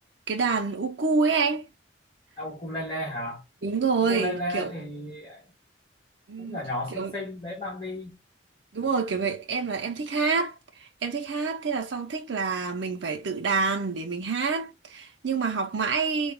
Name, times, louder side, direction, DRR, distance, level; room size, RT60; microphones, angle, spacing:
voice 1, 0.3-1.7 3.6-4.7 6.3-6.6 7.0-7.1 8.7-16.3, right 4 dB, 75° right, 0.6 m, -27 dB
voice 2, 2.4-3.4 4.0-5.5 6.4-8.2, left 1 dB, 25° left, 1.4 m, -34 dB
3.8 x 2.3 x 3.5 m
head